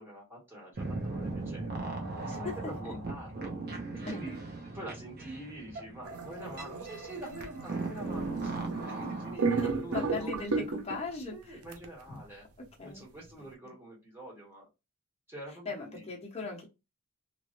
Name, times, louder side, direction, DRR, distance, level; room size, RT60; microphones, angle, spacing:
voice 1, 0.0-1.8 2.2-3.5 3.9-4.4 4.7-8.6 8.8-10.7 11.3-12.5 12.8-14.6 15.3-16.1, right 1 dB, 10° right, 1.6 m, -45 dB
sound 1, 0.8-9.4, right 3 dB, 50° right, 0.9 m, -38 dB
sound 2, 6.0-9.0 9.4-11.1 11.7-11.8, right 4 dB, 70° right, 0.6 m, -34 dB
voice 2, 9.9-11.6 12.8-13.0 13.6-13.7 15.6-16.7, left 4 dB, 30° left, 0.9 m, -38 dB
3.1 x 2.6 x 2.6 m
head